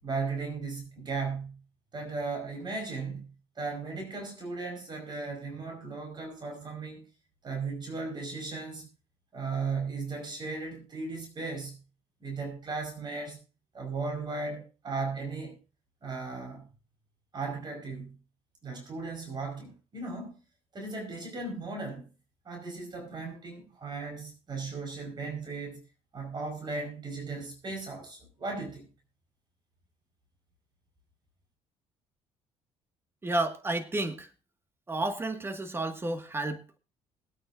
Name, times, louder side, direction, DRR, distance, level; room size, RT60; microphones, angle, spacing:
voice 1, 0.0-1.6 1.9-3.3 3.5-7.0 7.4-8.9 9.3-11.8 12.2-13.4 13.7-15.6 16.0-16.7 17.3-18.2 18.6-20.4 20.7-22.0 22.4-25.8 26.1-28.9, right 4 dB, 35° right, 4.9 m, -36 dB
voice 2, 33.2-34.3 34.9-36.8, right 2 dB, 20° right, 1.8 m, -31 dB
20.5 x 8.9 x 2.6 m
cardioid pair, 100°, 12 cm